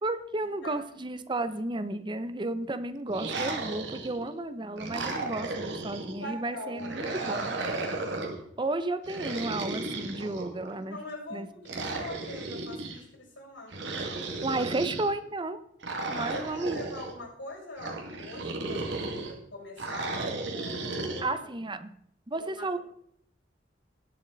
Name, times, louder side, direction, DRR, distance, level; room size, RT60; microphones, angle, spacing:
voice 1, 0.0-7.6 8.6-11.0 11.3-11.5 14.4-15.6 16.1-16.8 21.2-21.9 22.3-22.8, right 2 dB, 25° right, 11 dB, 0.7 m, -33 dB
sound 1, 3.1-4.3 4.8-6.2 6.8-8.4 9.0-10.7 11.6-13.0 13.7-15.1 15.8-17.1 17.8-19.3 19.8-21.2, right 2 dB, 75° right, 2.2 m, -34 dB
voice 2, 6.1-7.4 10.7-13.8 14.3-14.6 16.1-21.5 22.3-22.8, left 1 dB, 90° left, -1 dB, 6.1 m, -43 dB
19.0 x 7.4 x 4.0 m, 0.70 s
head